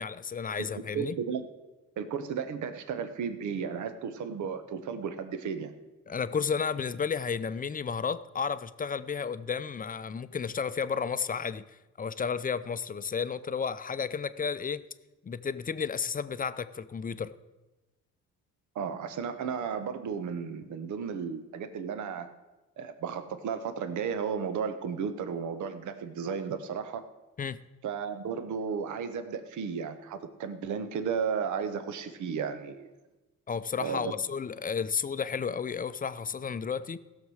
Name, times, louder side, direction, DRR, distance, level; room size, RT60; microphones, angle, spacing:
voice 1, 0.0-1.2 6.1-11.6 12.0-14.8 15.2-17.3 27.4-27.6 33.5-37.0, left 6 dB, 30° left, 0.6 m, -32 dB
voice 2, 0.9-1.5 2.0-5.7 18.7-22.3 22.8-27.0 27.8-32.9 33.8-34.1, right 6 dB, 75° right, 1.1 m, -34 dB
16.0 x 6.8 x 6.3 m
cardioid pair, 90°, 30 cm